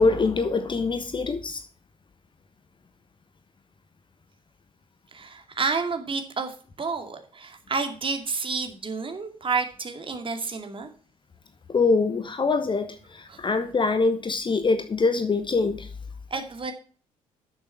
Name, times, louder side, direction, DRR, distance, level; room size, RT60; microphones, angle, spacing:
voice 1, 0.0-1.6 11.7-15.9, left 4 dB, 25° left, 1.2 m, -24 dB
voice 2, 5.1-10.9 13.3-13.4 16.3-16.7, right 4 dB, 30° right, 2.4 m, -30 dB
12.0 x 7.1 x 4.5 m
figure-of-eight pair, 50°, 18 cm